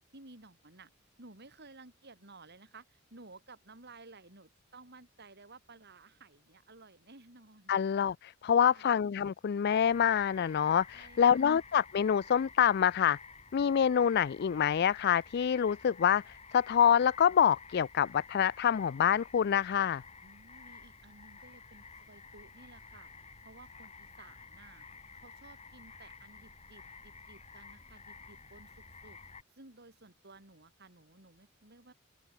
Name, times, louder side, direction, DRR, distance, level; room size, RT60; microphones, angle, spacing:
voice 1, 0.1-0.9 1.2-7.7 8.6-8.9 10.9-11.6 20.2-23.1 23.4-24.9 25.1-29.2 29.6-31.9, right 3 dB, 55° right, 5.1 m, -55 dB
voice 2, 7.7-13.2 13.5-20.0, left 8 dB, 50° left, 0.4 m, -26 dB
sound 1, 9.7-29.4, left 4 dB, 30° left, 6.7 m, -52 dB
open air
head